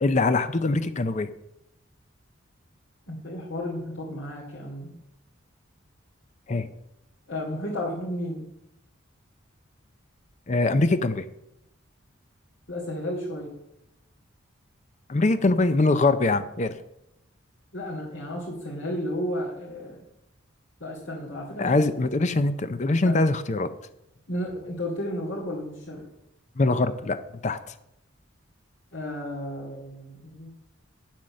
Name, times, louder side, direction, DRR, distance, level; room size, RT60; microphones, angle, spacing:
voice 1, 0.0-1.3 6.5-6.7 10.5-11.2 15.1-16.7 21.6-23.7 26.6-27.2 27.4-27.6, left 2 dB, 35° left, 11 dB, 0.5 m, -23 dB
voice 2, 3.1-5.0 7.3-8.5 12.7-13.5 17.7-20.0 20.8-21.8 23.0-23.2 24.3-26.1 28.9-30.5, left 1 dB, 70° left, -6 dB, 2.6 m, -33 dB
9.2 x 7.4 x 6.5 m, 0.85 s
head